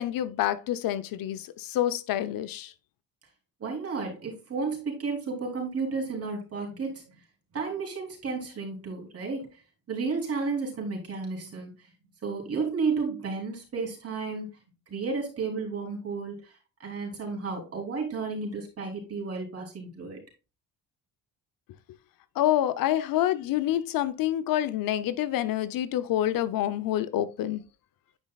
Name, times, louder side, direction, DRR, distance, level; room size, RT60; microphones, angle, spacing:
voice 1, 0.0-2.7 22.4-27.6, left 12 dB, 70° left, 0.7 m, -27 dB
voice 2, 3.6-7.0 7.5-9.6 9.9-11.9 12.2-14.5 14.9-20.2, right 4 dB, 40° right, 3.4 m, -32 dB
9.6 x 5.2 x 2.4 m
supercardioid pair, 85°, 36 cm